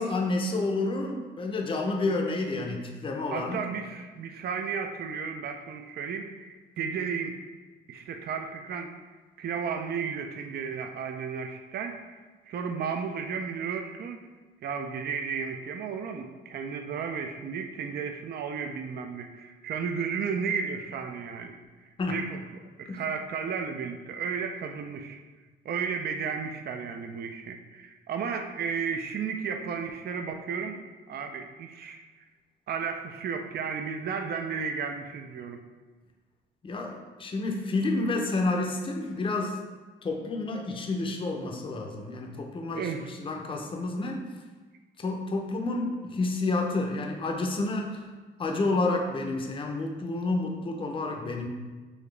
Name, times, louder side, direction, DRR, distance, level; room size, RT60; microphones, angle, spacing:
voice 1, 0.0-3.6 22.0-22.2 22.9-23.0 36.6-39.6 40.0-44.2 45.0-48.0 48.4-51.5, left 2 dB, 25° left, 1 dB, 0.6 m, -29 dB
voice 2, 3.3-7.4 7.9-8.9 9.4-12.0 12.5-14.3 14.6-22.4 22.8-25.2 25.6-30.8 31.1-32.0 32.7-35.6 42.7-43.1, right 6 dB, 55° right, 5 dB, 0.4 m, -33 dB
4.0 x 2.9 x 3.2 m, 1.3 s
cardioid pair, 90°, 20 cm